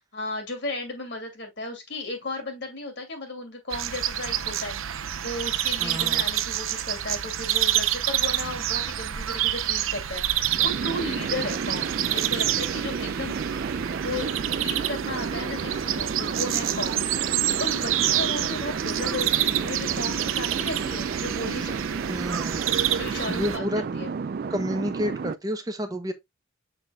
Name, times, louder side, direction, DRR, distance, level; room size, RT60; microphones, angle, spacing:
voice 1, 0.1-13.5 14.0-17.1 17.6-22.0 22.9-24.1, left 2 dB, 55° left, 2.5 m, -35 dB
sound 1, 3.7-23.6, right 11 dB, 80° right, 0.7 m, -28 dB
voice 2, 5.8-6.2 22.1-22.6 23.3-23.8 24.5-26.1, equal, 20° right, 0.7 m, -30 dB
sound 2, 10.4-25.3, right 5 dB, 45° right, 0.3 m, -32 dB
6.9 x 6.1 x 2.3 m
head